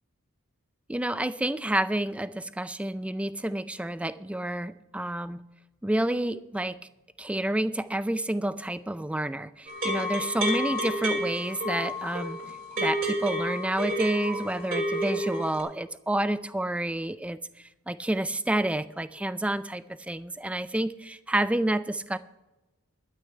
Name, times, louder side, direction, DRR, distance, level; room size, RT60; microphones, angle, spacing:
voice 1, 0.9-5.5 5.8-6.8 7.2-12.4 12.8-17.4 17.9-22.2, right 1 dB, 5° right, 14 dB, 0.3 m, -29 dB
sound 1, 9.7-15.6, equal, 40° right, 3.7 m, -30 dB
12.0 x 6.6 x 8.7 m, 1.0 s
head